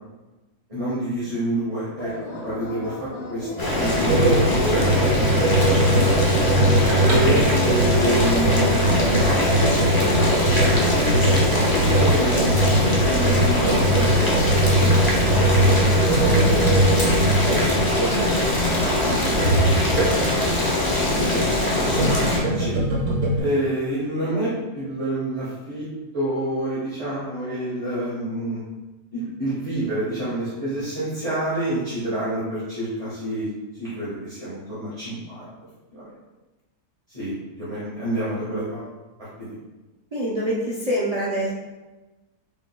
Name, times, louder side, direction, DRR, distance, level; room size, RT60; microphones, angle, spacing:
voice 1, 0.7-6.0 7.1-14.9 15.2-16.8 17.4-20.3 20.9-22.8 23.4-25.9 26.1-28.6 29.1-33.5 33.8-35.5 35.9-36.1 37.1-38.9 39.2-39.6, right 1 dB, 25° right, -11 dB, 1.3 m, -28 dB
sound 1, 2.0-11.0, left 1 dB, 65° left, 0.7 m, -35 dB
Boiling, 3.6-22.4, left 1 dB, 25° left, 0.5 m, -22 dB
sound 2, 4.1-20.4 21.5-23.4, right 1 dB, 70° right, 1.6 m, -21 dB
voice 2, 40.1-41.5, equal, 50° right, -7 dB, 0.4 m, -25 dB
4.9 x 3.7 x 2.2 m, 1.1 s
omnidirectional pair, 1.6 m